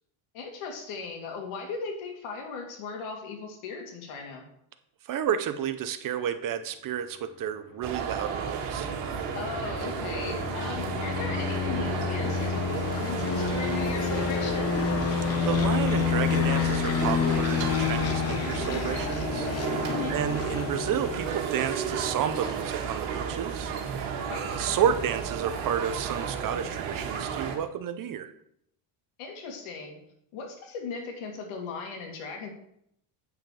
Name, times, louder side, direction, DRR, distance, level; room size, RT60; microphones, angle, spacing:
voice 1, 0.3-4.5 9.3-14.9 19.9-20.3 24.3-24.7 29.2-30.0 30.3-32.5, left 4 dB, 80° left, 2 dB, 2.4 m, -37 dB
voice 2, 5.0-8.9 15.4-23.7 24.6-28.3, right 9 dB, 40° right, 10 dB, 0.7 m, -31 dB
sound 1, 7.8-27.6, right 7 dB, 90° right, 1.8 m, -33 dB
sound 2, 8.0-21.3, left 7 dB, 30° left, 0.9 m, -29 dB
8.7 x 6.4 x 4.8 m, 0.74 s
cardioid pair, 150°, 49 cm